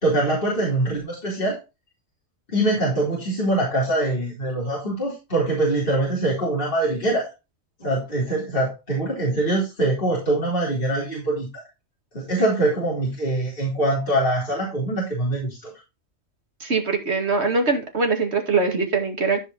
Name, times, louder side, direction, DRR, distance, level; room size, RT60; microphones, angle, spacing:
voice 1, 0.0-1.6 2.5-7.3 7.8-11.5 12.1-15.7, right 1 dB, 45° left, -5 dB, 4.2 m, -23 dB
voice 2, 16.6-19.4, right 4 dB, 55° right, 4 dB, 2.5 m, -22 dB
14.5 x 5.2 x 4.0 m, 0.27 s
omnidirectional pair, 1.3 m